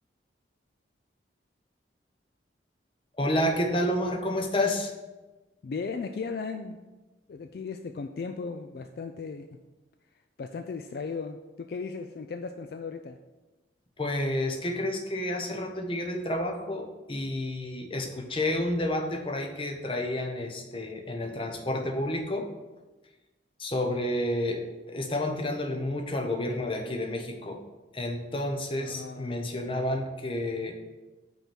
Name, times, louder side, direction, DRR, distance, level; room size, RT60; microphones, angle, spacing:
voice 1, 3.2-4.9 14.0-22.5 23.6-27.6 27.9-30.8, left 1 dB, 30° left, 3 dB, 0.7 m, -30 dB
voice 2, 5.6-6.8 7.3-9.5 10.4-13.2 28.8-30.0, left 4 dB, 55° left, 7 dB, 0.3 m, -36 dB
5.6 x 4.4 x 6.1 m, 1.2 s
head